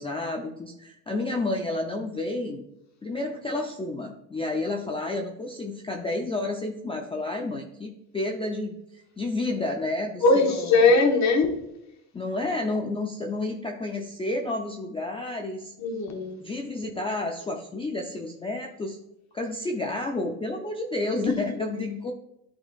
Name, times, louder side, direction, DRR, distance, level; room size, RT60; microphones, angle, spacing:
voice 1, 0.0-2.6 3.0-11.0 12.1-15.7 16.4-19.0 19.3-22.1, left 2 dB, 15° left, 2 dB, 0.4 m, -30 dB
voice 2, 10.2-11.6 15.8-16.4 21.3-21.4, left 3 dB, 40° left, 4 dB, 1.2 m, -20 dB
11.5 x 3.8 x 2.3 m, 0.85 s
cardioid pair, 130°, 44 cm